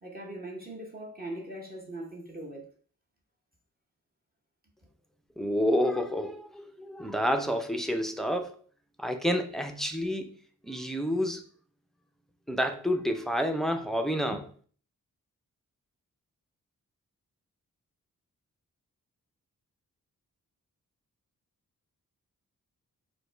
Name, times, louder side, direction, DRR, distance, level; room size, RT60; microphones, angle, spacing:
voice 1, 0.0-2.7, right 1 dB, 25° right, 1.0 m, -40 dB
voice 2, 5.4-8.6 9.0-10.3 10.6-11.4 12.5-14.5, equal, ahead, 0.5 m, -29 dB
5.0 x 2.3 x 4.4 m
wide cardioid pair, 150°, 33 cm